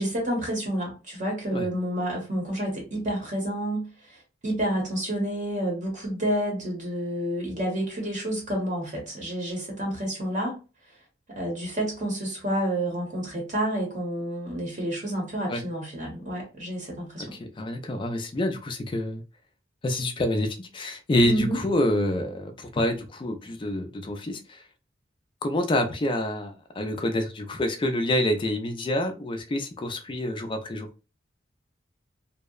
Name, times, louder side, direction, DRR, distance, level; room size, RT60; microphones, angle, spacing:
voice 1, 0.0-10.6 11.3-17.4 21.2-21.6, right 1 dB, 40° right, 0.8 m, -29 dB
voice 2, 17.2-19.2 19.8-24.6 25.4-30.9, left 1 dB, 25° left, 0.4 m, -27 dB
2.6 x 2.1 x 2.3 m
head